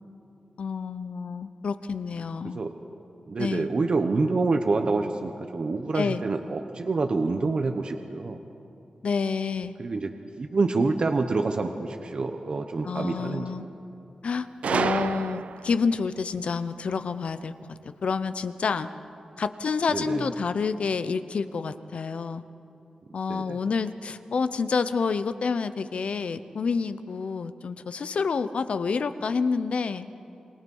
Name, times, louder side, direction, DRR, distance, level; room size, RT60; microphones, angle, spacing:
voice 1, 0.6-2.6 3.4-3.7 5.9-6.2 9.0-9.7 12.8-13.7 14.2-18.9 19.4-22.4 23.1-30.1, left 5 dB, 65° left, 12 dB, 0.8 m, -28 dB
voice 2, 3.3-8.4 9.8-10.1 10.4-13.5 19.9-20.3 23.3-23.6, right 3 dB, 50° right, 5 dB, 1.0 m, -27 dB
Gunshot gunfire, 14.6-15.8, right 6 dB, 80° right, 0.4 m, -28 dB
27.0 x 23.5 x 5.5 m, 2.8 s
wide cardioid pair, 135°, 2 cm